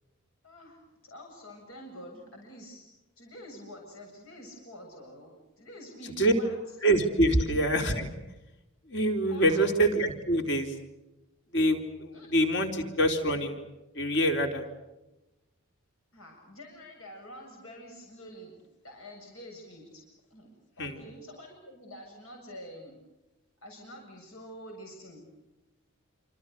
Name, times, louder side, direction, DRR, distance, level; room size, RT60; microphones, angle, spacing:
voice 1, 0.4-2.8 3.2-6.6 7.2-7.4 9.3-9.6 12.1-12.3 16.1-18.6 18.8-20.0 20.3-20.5 20.8-23.0 23.6-25.3, equal, 75° left, 1 dB, 7.6 m, -47 dB
voice 2, 6.8-8.1 8.9-10.7 11.5-13.6 13.9-14.6 20.8-21.0, right 1 dB, 55° left, 5 dB, 4.1 m, -25 dB
28.5 x 27.0 x 6.7 m, 1.0 s
head